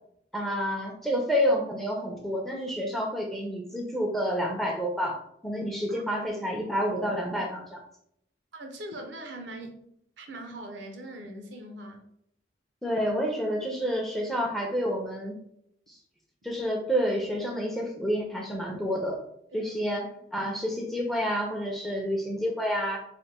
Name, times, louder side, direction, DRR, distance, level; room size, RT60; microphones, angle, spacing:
voice 1, 0.3-7.8 12.8-15.4 15.9-16.0 16.4-19.2 19.5-23.0, equal, ahead, 0 dB, 0.6 m, -29 dB
voice 2, 8.5-9.8 10.2-12.0 19.5-19.7, right 1 dB, 80° right, 3 dB, 0.8 m, -41 dB
3.3 x 2.2 x 4.2 m, 0.71 s
head